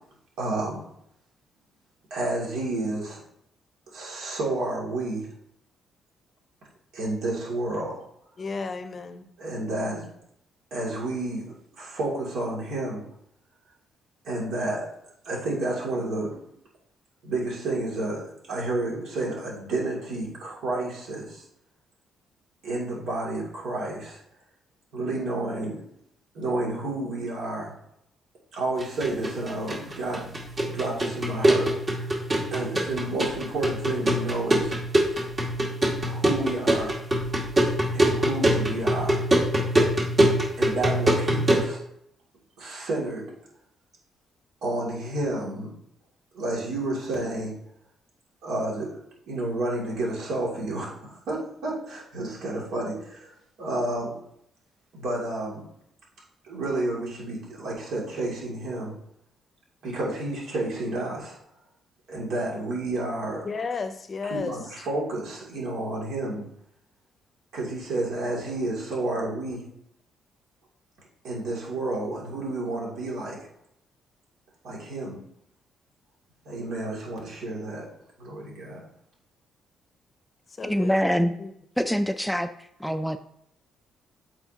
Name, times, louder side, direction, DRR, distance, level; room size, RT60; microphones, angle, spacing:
voice 1, 0.4-0.8 2.1-3.2 3.9-5.3 6.9-8.0 9.4-10.1 10.7-13.0 14.2-14.9 15.2-16.4 17.2-21.4 22.6-24.2 24.9-25.8 26.3-27.7 28.5-30.3 30.6-32.1 32.5-34.7 36.0-37.0 37.9-39.2 40.6-41.8 42.6-43.3 44.6-45.7 46.3-47.6 48.4-49.0 49.3-53.3 53.6-54.2 54.9-55.7 56.4-59.0 59.8-61.4 62.1-63.5 64.3-66.5 67.5-69.6 71.2-73.5 74.6-75.2 76.4-77.9 78.2-78.8, right 2 dB, 75° right, -4 dB, 2.5 m, -30 dB
voice 2, 8.4-9.2 63.4-64.5 80.6-81.5, left 4 dB, 40° left, 9 dB, 0.6 m, -33 dB
sound 1, 28.8-41.7, right 1 dB, 35° right, 1.9 m, -24 dB
voice 3, 80.6-81.3 81.8-83.2, equal, ahead, 9 dB, 0.3 m, -25 dB
8.2 x 4.3 x 2.8 m, 0.74 s
cardioid pair, 90°, 0 cm